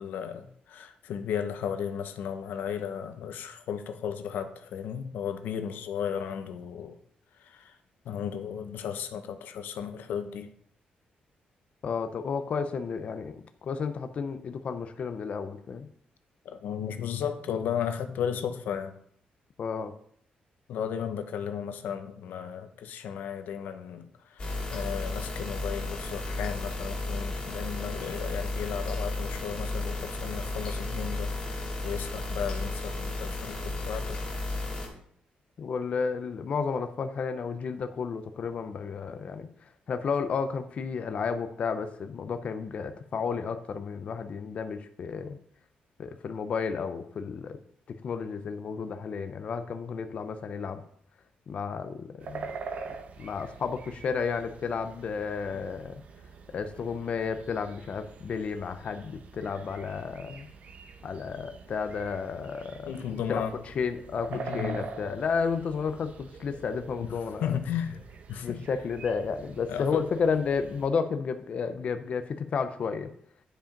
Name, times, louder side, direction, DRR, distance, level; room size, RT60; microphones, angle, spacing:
voice 1, 0.0-7.0 7.4-7.7 8.1-10.5 16.4-18.9 20.7-24.1 24.4-34.2 55.5-55.6 62.9-63.5 64.3-64.8 67.0-67.1 67.4-68.0 68.3-68.6 69.7-70.0, left 8 dB, 90° left, 8 dB, 0.9 m, -34 dB
voice 2, 11.8-15.9 19.6-19.9 35.6-45.4 46.0-47.6 47.9-50.8 51.5-52.5 53.2-56.0 56.5-60.5 61.0-63.0 63.3-67.6 68.4-73.1, left 5 dB, 45° left, 9 dB, 0.6 m, -32 dB
sound 1, 24.4-34.9, left 2 dB, 30° left, 2.7 m, -33 dB
sound 2, 52.2-70.9, right 5 dB, 50° right, 0.8 m, -45 dB
10.0 x 5.1 x 5.2 m, 0.64 s
wide cardioid pair, 160°, 3 cm